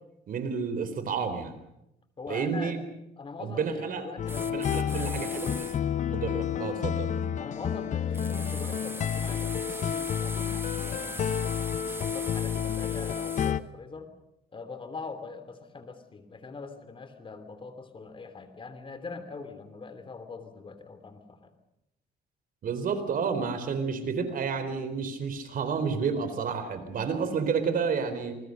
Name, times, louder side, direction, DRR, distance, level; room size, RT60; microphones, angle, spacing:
voice 1, 0.3-1.5 2.3-2.8 3.4-4.1 4.4-5.7 6.1-7.2 22.6-28.4, right 5 dB, 55° right, 10 dB, 4.1 m, -30 dB
voice 2, 2.2-2.8 3.2-5.5 7.4-11.7 12.0-14.1 14.5-21.5, left 4 dB, 30° left, 10 dB, 3.0 m, -43 dB
sound 1, 4.2-13.6, left 9 dB, 50° left, 0.9 m, -30 dB
sound 2, 4.3-5.8 8.1-13.5, right 2 dB, 15° right, 1.9 m, -41 dB
27.5 x 20.5 x 6.6 m, 0.85 s
cardioid pair, 110°, 17 cm